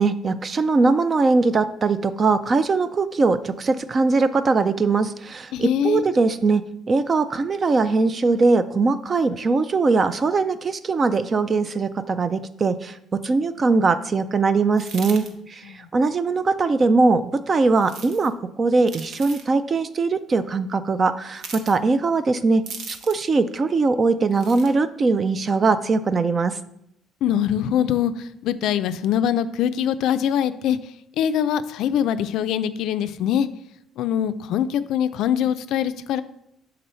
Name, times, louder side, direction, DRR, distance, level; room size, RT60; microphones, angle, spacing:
voice 1, 0.0-6.6 6.9-12.9 13.2-15.2 15.5-15.6 15.9-26.5, right 3 dB, 25° right, 13 dB, 0.3 m, -21 dB
voice 2, 5.5-6.0 15.7-15.9 27.2-28.1 28.4-30.8 31.2-33.5 34.0-36.2, left 9 dB, 65° left, 12 dB, 0.4 m, -23 dB
sound 1, 14.7-15.3 17.8-18.3 18.8-19.5 21.4-21.8 22.7-23.3 24.3-24.7, right 5 dB, 55° right, 0.8 m, -38 dB
6.8 x 3.9 x 4.3 m, 0.77 s
cardioid pair, 150°, 0 cm